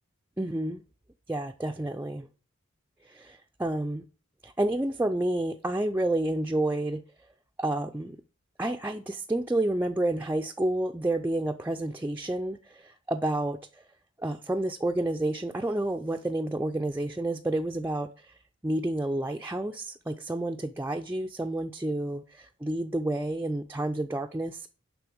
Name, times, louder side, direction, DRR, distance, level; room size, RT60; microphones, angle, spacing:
voice 1, 0.4-0.8 1.3-2.3 3.1-4.0 4.4-7.0 7.6-8.2 8.6-13.6 14.2-18.3 18.6-24.7, right 1 dB, 10° right, 0.4 m, -30 dB
10.5 x 3.8 x 6.9 m
head